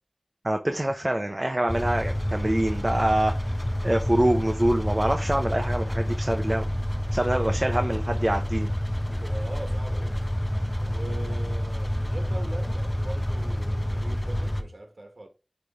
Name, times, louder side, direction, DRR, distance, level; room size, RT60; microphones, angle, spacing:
voice 1, 0.4-3.4 3.8-6.6 7.1-8.7, right 1 dB, 30° right, 0.7 m, -25 dB
sound 1, 1.7-14.6, equal, 15° left, 0.9 m, -28 dB
voice 2, 9.0-10.3 10.8-15.3, right 2 dB, 65° right, 1.3 m, -41 dB
9.6 x 3.3 x 3.5 m
wide cardioid pair, 50°, 0 cm